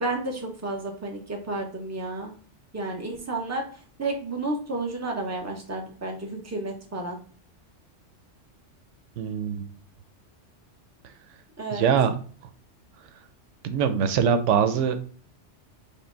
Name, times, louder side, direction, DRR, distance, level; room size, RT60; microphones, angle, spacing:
voice 1, 0.0-2.3 2.7-7.2 11.6-11.8, right 2 dB, 15° right, 1 dB, 0.8 m, -31 dB
voice 2, 9.2-9.7 11.7-12.1 13.6-15.0, right 7 dB, 90° right, 9 dB, 0.9 m, -22 dB
5.5 x 2.2 x 3.8 m, 0.44 s
omnidirectional pair, 1.2 m